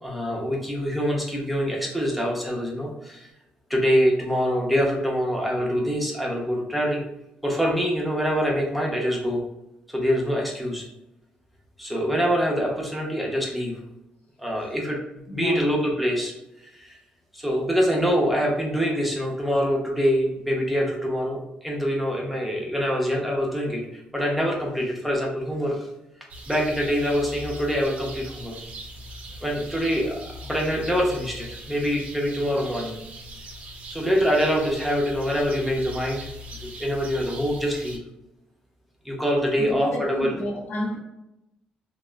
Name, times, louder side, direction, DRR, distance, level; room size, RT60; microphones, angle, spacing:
voice 1, 0.0-3.3 3.7-7.0 7.4-9.4 9.9-10.8 11.8-13.8 14.4-15.0 15.3-17.0 17.3-25.8 26.5-28.6 29.4-33.0 33.9-36.3 36.6-38.0 39.0-40.3, equal, ahead, -2 dB, 0.7 m, -25 dB
voice 2, 15.3-15.7 39.6-41.0, left 1 dB, 60° left, -1 dB, 0.8 m, -31 dB
sound 1, 26.3-38.0, equal, 55° right, 0.5 m, -40 dB
2.8 x 2.0 x 2.2 m, 0.90 s
cardioid pair, 80°, 3 cm